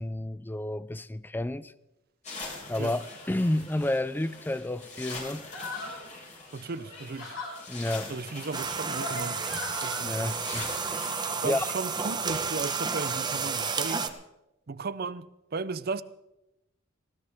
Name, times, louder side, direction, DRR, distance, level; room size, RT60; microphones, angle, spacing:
voice 1, 0.0-1.7 2.7-5.5 7.7-8.1 10.0-11.7, left 1 dB, 10° left, 0.5 m, -31 dB
sound 1, 2.2-12.2, left 3 dB, 35° left, 4.4 m, -44 dB
sound 2, 5.5-6.1 6.8-7.6 8.5-10.0, left 2 dB, 80° left, 5.4 m, -38 dB
voice 2, 6.5-7.4 8.1-9.5 9.8-10.2 11.4-14.1 14.7-16.0, right 4 dB, 50° right, 0.6 m, -35 dB
sound 3, 8.5-14.1, right 5 dB, 20° right, 1.0 m, -31 dB
19.5 x 16.5 x 3.6 m
head